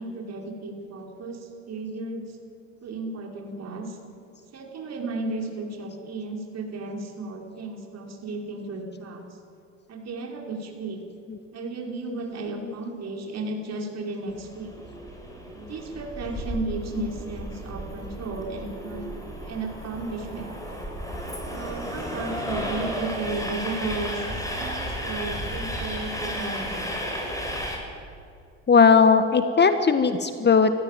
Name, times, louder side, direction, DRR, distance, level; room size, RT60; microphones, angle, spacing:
voice 1, 0.0-2.4 2.8-4.0 4.5-9.2 9.9-11.0 11.5-14.7 15.5-19.1 19.4-20.5 21.5-27.1, right 3 dB, 45° right, 1 dB, 5.4 m, -34 dB
Train, 14.3-27.8, equal, 10° left, 6.8 m, -33 dB
voice 2, 28.7-30.7, left 5 dB, 25° left, 10 dB, 1.7 m, -18 dB
29.5 x 15.0 x 9.3 m, 2.5 s
figure-of-eight pair, 60°, 38 cm